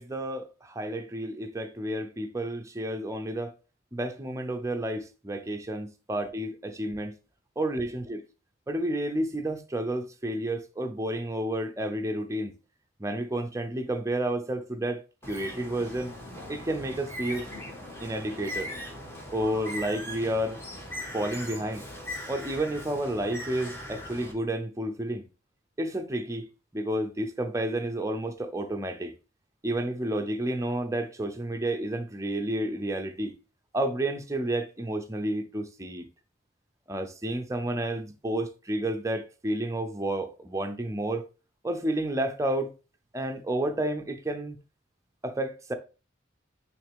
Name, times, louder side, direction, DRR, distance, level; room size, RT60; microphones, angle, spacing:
voice 1, 0.0-3.5 3.9-7.1 7.6-8.2 8.7-12.5 13.0-15.0 15.3-16.1 16.5-17.5 18.0-18.7 19.3-20.6 21.1-21.9 22.3-25.2 25.8-29.1 29.6-33.3 33.7-36.1 36.9-41.2 41.6-42.7 43.1-44.6 45.2-45.7, right 1 dB, 15° right, 0.6 m, -31 dB
Bird, 15.2-24.3, left 1 dB, 15° left, 1.4 m, -40 dB
9.0 x 3.2 x 3.5 m
head